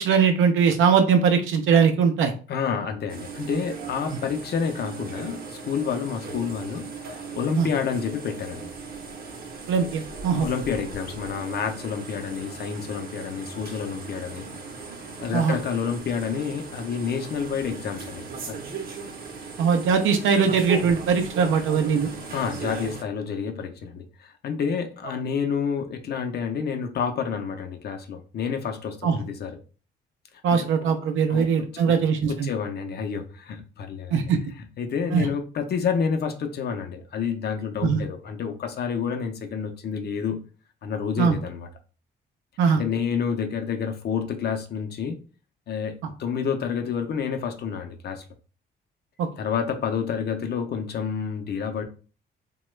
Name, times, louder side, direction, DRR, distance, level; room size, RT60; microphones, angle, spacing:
voice 1, 0.0-2.3 7.6-7.7 9.7-10.5 15.3-15.6 19.6-22.1 29.0-29.2 30.4-32.5 34.1-34.4 35.1-35.3 37.8-38.0 41.2-41.4 42.6-42.8 49.2-49.3, right 6 dB, 80° right, 0.5 m, -21 dB
voice 2, 2.5-8.7 10.4-14.5 15.2-18.6 22.3-29.6 30.6-30.7 31.3-31.7 32.3-34.1 34.8-40.4 40.8-41.7 42.7-45.2 45.7-45.9 46.2-48.2 49.4-51.8, left 6 dB, 55° left, 0.6 m, -29 dB
sound 1, 3.1-23.0, right 4 dB, 50° right, 0.7 m, -37 dB
2.9 x 2.2 x 3.1 m
cardioid pair, 90°, 20 cm